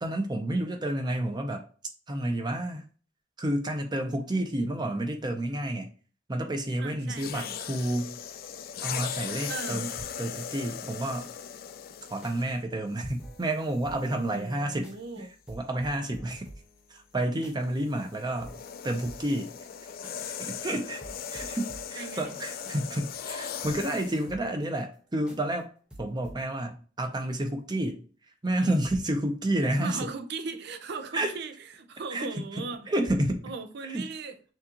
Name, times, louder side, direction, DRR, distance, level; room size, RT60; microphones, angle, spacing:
voice 1, 0.0-1.6 2.1-2.8 3.4-5.9 6.3-8.1 8.8-9.9 10.2-11.3 12.1-16.5 16.9-18.6 18.8-19.5 20.4-21.0 21.3-25.7 26.0-28.0 28.4-30.1 31.1-31.3 32.1-32.3 32.9-33.4 33.9-34.0, right 1 dB, 20° right, 0.7 m, -30 dB
voice 2, 6.8-7.6 9.5-9.9 14.0-15.3 22.0-22.3 28.5-28.8 29.8-32.9 33.4-34.4, right 4 dB, 60° right, 0.6 m, -38 dB
sound 1, 7.1-12.6 13.4-13.6 17.6-24.3, left 8 dB, 50° left, 0.4 m, -38 dB
sound 2, 12.1-14.2 14.5-14.6 14.8-15.2 15.5-17.8 18.1-18.2 18.4-20.4 20.7-20.8 21.0-25.0 25.3-25.6 25.9-26.4, right 1 dB, 5° right, 1.0 m, -50 dB
6.3 x 2.5 x 2.9 m
head